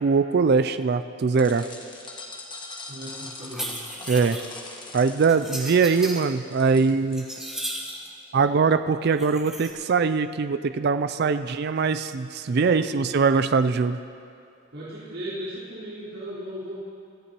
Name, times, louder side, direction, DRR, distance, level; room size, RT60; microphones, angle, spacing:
voice 1, 0.0-1.7 4.1-4.4 4.9-7.3 8.3-14.0, right 5 dB, 50° right, 11 dB, 0.4 m, -22 dB
sound 1, 1.4-7.4, left 3 dB, 25° left, 1.4 m, -42 dB
voice 2, 2.9-3.8 12.4-13.2 14.7-16.8, equal, 75° right, -13 dB, 4.4 m, -37 dB
sound 2, 3.4-4.5 5.3-6.2 6.7-8.1 9.1-9.7, right 1 dB, 5° right, 1.3 m, -35 dB
22.0 x 14.0 x 3.0 m, 2.4 s
head